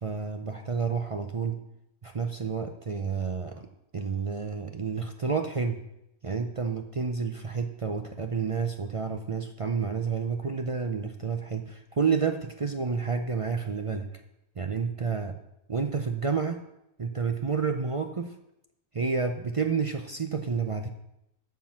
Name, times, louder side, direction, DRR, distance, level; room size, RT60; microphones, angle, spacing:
voice 1, 0.0-1.6 2.0-3.7 3.9-5.8 6.2-14.1 14.6-15.4 15.7-16.6 17.0-18.3 18.9-20.9, right 5 dB, 60° right, 6 dB, 0.3 m, -30 dB
8.8 x 6.0 x 7.3 m, 0.83 s
omnidirectional pair, 1.5 m